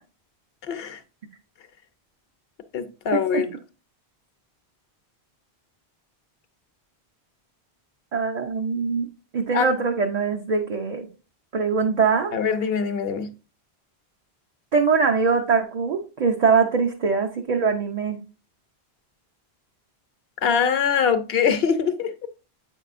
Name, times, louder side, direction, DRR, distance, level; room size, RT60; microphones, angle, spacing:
voice 1, 0.7-1.0 2.7-3.5 9.5-9.7 12.3-13.3 20.4-22.1, left 7 dB, 70° left, 1.0 m, -23 dB
voice 2, 8.1-9.1 9.3-11.1 11.5-12.3 14.7-18.2, right 5 dB, 45° right, 0.7 m, -22 dB
7.9 x 5.4 x 2.5 m
omnidirectional pair, 1.1 m